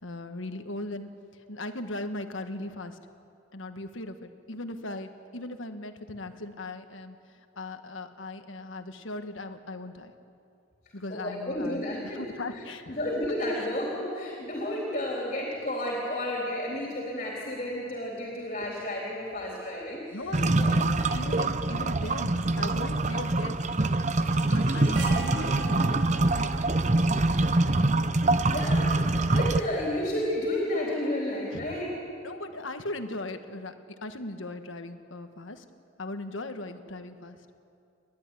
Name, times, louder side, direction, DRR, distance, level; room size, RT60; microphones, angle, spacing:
voice 1, 0.0-1.1 1.5-3.0 3.5-7.2 7.6-10.1 10.9-11.8 12.1-13.0 13.6-13.7 20.1-23.6 24.5-26.5 31.5-31.7 32.2-33.7 34.0-35.6 36.0-37.4, left 2 dB, 85° left, 8 dB, 1.5 m, -38 dB
voice 2, 11.1-12.2 12.5-20.7 21.0-21.1 28.5-28.9 29.3-31.9, left 1 dB, 40° left, -3 dB, 3.9 m, -32 dB
sound 1, 20.3-29.6, right 2 dB, 35° right, 0.8 m, -25 dB
sound 2, 23.7-29.4, right 3 dB, 80° right, 5.5 m, -40 dB
30.0 x 12.0 x 10.0 m, 2.5 s
head